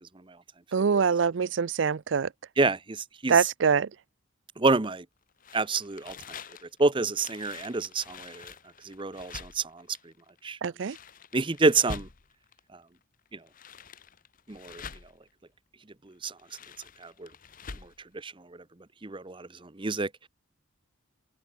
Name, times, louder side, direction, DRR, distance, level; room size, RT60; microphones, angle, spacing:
voice 1, 0.7-2.3 3.3-3.9 10.6-11.0, right 6 dB, 65° right, 0.4 m, -24 dB
voice 2, 2.6-3.3 4.6-5.0 5.5-6.2 6.8-8.5 8.8-9.8 10.4-10.6 11.3-12.1 13.3-13.4 14.5-14.8 16.2-16.3 17.0-17.3 18.1-18.3 19.0-20.1, right 3 dB, 25° right, 0.7 m, -27 dB
sound 1, 5.4-12.6 13.3-15.3 16.2-18.0, left 5 dB, 40° left, 0.9 m, -45 dB
open air
head